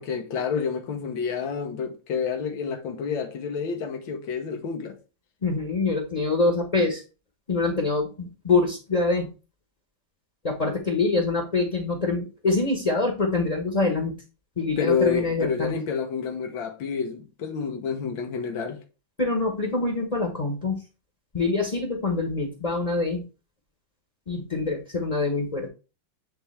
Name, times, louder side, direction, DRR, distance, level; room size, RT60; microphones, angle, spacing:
voice 1, 0.0-5.0 14.8-18.8, left 6 dB, 90° left, 1.8 m, -29 dB
voice 2, 5.4-7.0 7.5-9.3 10.4-14.1 14.6-15.7 19.2-20.8 21.3-23.2 24.3-25.7, left 3 dB, 25° left, 1.0 m, -25 dB
10.0 x 3.4 x 3.2 m
omnidirectional pair, 2.1 m